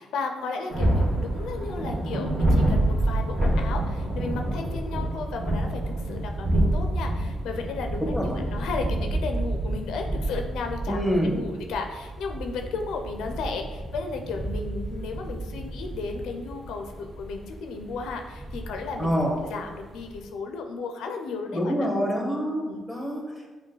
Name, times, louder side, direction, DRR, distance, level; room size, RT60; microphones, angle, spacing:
voice 1, 0.0-11.0 11.3-19.2 19.5-21.7 22.6-22.8, left 4 dB, 85° left, 4 dB, 0.4 m, -34 dB
sound 1, 0.7-20.3, right 1 dB, 20° right, 1.4 m, -28 dB
voice 2, 8.0-8.4 10.9-11.4 19.0-19.4 21.5-23.5, equal, ahead, -1 dB, 1.1 m, -26 dB
6.1 x 2.2 x 3.8 m, 1.4 s
cardioid pair, 90°, 0 cm